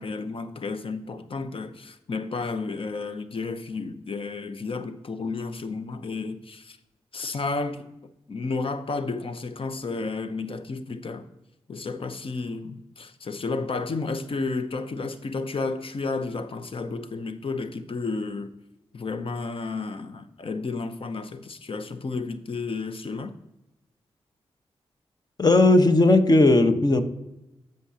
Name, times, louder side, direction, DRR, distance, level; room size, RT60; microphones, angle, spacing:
voice 1, 0.0-6.8 7.1-7.9 8.3-11.3 11.7-18.5 18.9-23.3, left 3 dB, 55° left, 0.8 m, -32 dB
voice 2, 25.4-27.0, left 2 dB, 40° left, 1.2 m, -17 dB
15.5 x 5.3 x 2.8 m
cardioid pair, 50°, 11 cm